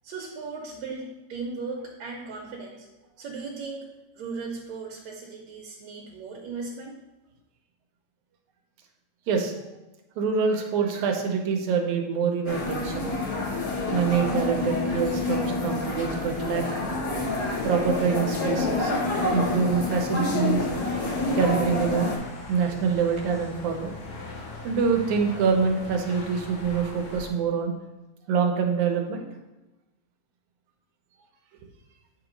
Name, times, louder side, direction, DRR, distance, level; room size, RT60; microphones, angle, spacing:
voice 1, 0.0-2.9 3.2-3.9 4.2-7.0, right 4 dB, 70° right, -1 dB, 2.0 m, -37 dB
voice 2, 10.2-13.1 13.9-16.7 17.6-22.1 22.5-23.9 24.6-27.7 28.3-29.2, right 6 dB, 90° right, 2 dB, 2.3 m, -25 dB
sound 1, 12.4-22.2, left 2 dB, 70° left, 0.8 m, -28 dB
sound 2, 20.4-27.3, left 2 dB, 90° left, 2.6 m, -41 dB
8.8 x 3.0 x 5.1 m, 1.0 s
omnidirectional pair, 3.3 m